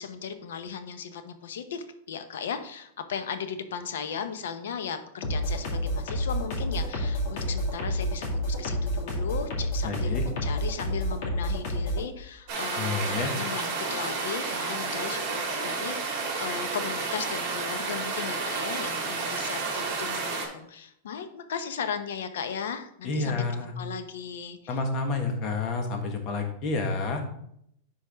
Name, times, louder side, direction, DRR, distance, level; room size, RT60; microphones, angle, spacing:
voice 1, 0.0-24.6, left 7 dB, 90° left, 9 dB, 0.9 m, -36 dB
sound 1, 5.2-12.0, equal, 55° left, 2.2 m, -29 dB
voice 2, 9.8-10.2 12.8-13.3 23.0-23.7 24.7-27.2, left 3 dB, 35° left, 4 dB, 1.4 m, -29 dB
sound 2, 12.5-20.5, right 4 dB, 40° right, 3.3 m, -31 dB
10.0 x 4.7 x 3.5 m, 0.72 s
supercardioid pair, 155°, 0 cm